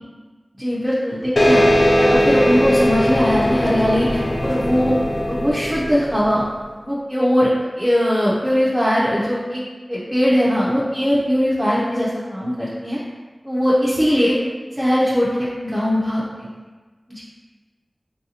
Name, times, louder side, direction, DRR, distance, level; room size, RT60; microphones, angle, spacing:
voice 1, 0.5-1.6 1.9-5.0 5.3-6.4 6.8-7.5 7.8-9.6 9.9-13.0 13.4-14.4 14.7-16.5 17.1-17.2, equal, 5° right, -9 dB, 0.6 m, -20 dB
sound 1, 1.4-6.4, equal, 65° left, 0.3 m, -19 dB
3.2 x 2.6 x 2.8 m, 1.3 s
wide cardioid pair, 45°, 0 cm